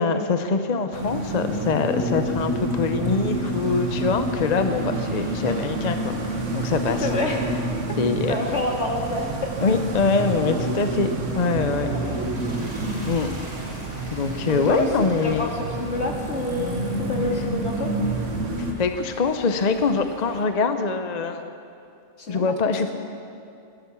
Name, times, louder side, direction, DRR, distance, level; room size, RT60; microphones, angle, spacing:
voice 1, 0.0-7.1 8.0-8.4 9.6-11.9 13.1-13.3 14.1-15.5 18.6-21.5 22.3-22.9, left 4 dB, 40° left, 8 dB, 0.7 m, -24 dB
sound 1, 0.9-18.7, right 2 dB, 85° right, 1.7 m, -29 dB
sound 2, 2.3-20.4, equal, 35° right, 2.9 m, -42 dB
voice 2, 6.9-7.5 8.3-9.6 12.1-12.2 14.4-14.9 15.2-17.9 22.2-22.4, left 2 dB, 65° left, 0 dB, 2.4 m, -28 dB
17.0 x 11.5 x 7.1 m, 2.5 s
omnidirectional pair, 1.2 m